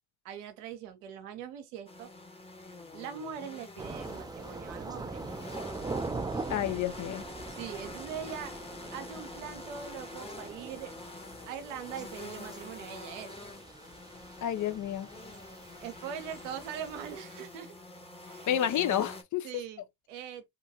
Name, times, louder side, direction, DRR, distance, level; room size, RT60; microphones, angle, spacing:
voice 1, 0.2-2.1 2.9-5.2 7.6-8.6 8.9-10.9 11.5-13.4 15.8-17.7 18.2-18.5 19.4-20.5, right 8 dB, 90° right, 0.7 m, -42 dB
sound 1, 1.9-19.2, left 2 dB, 15° left, 1.1 m, -46 dB
Thunder / Rain, 3.8-17.2, right 3 dB, 10° right, 0.4 m, -42 dB
voice 2, 6.5-7.2 14.4-15.1 18.5-19.5, left 10 dB, 55° left, 0.7 m, -30 dB
2.7 x 2.3 x 2.8 m
hypercardioid pair, 50°, 36 cm